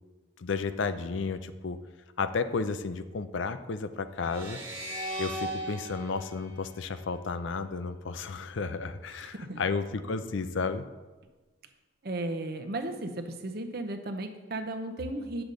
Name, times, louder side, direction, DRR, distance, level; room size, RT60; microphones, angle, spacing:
voice 1, 0.4-1.8 2.2-4.6 5.2-10.9, left 4 dB, 70° left, 11 dB, 0.5 m, -32 dB
sound 1, 4.2-7.5, right 1 dB, 30° right, 1.9 m, -38 dB
voice 2, 9.2-9.7 12.0-15.4, right 2 dB, 50° right, 6 dB, 0.7 m, -35 dB
9.8 x 6.9 x 3.9 m, 1.2 s
head